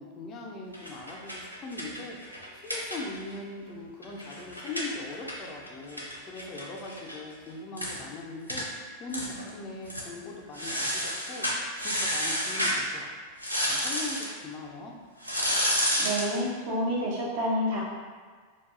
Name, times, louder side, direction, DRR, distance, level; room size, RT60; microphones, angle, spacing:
voice 1, 0.0-2.2 2.5-8.7 9.0-11.5 11.8-13.3 13.6-14.9, left 2 dB, 30° left, -1 dB, 0.5 m, -40 dB
sound 1, 0.7-3.4 3.7-3.8 4.0-7.2 7.5-7.6 7.8-8.0 8.5-8.7 9.1-9.5 9.8-10.1 10.5-12.8 13.4-14.3 15.2-16.4, equal, 90° left, 0.5 m, -30 dB
voice 2, 16.0-17.8, equal, 55° right, -5 dB, 0.6 m, -28 dB
2.6 x 2.3 x 3.7 m, 1.5 s
figure-of-eight pair, 90°, 0 cm